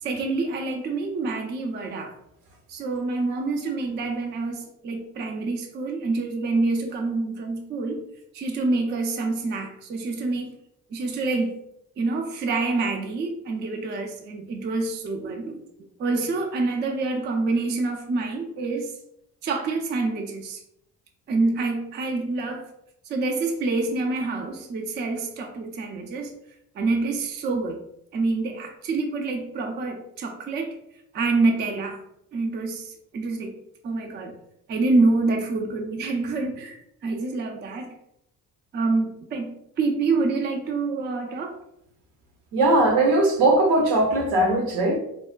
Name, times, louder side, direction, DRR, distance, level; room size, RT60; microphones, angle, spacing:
voice 1, 0.0-2.1 2.7-8.0 8.3-10.6 10.9-11.5 12.0-15.6 16.0-18.9 19.4-20.6 21.3-22.7 23.0-26.3 26.7-27.8 28.1-30.8 31.1-32.0 32.3-33.6 33.8-34.3 34.7-37.9 38.7-41.6, right 3 dB, 25° right, 0.4 m, -27 dB
voice 2, 42.5-45.0, right 2 dB, 60° right, 0.8 m, -19 dB
3.4 x 2.1 x 2.2 m
figure-of-eight pair, 45°, 46 cm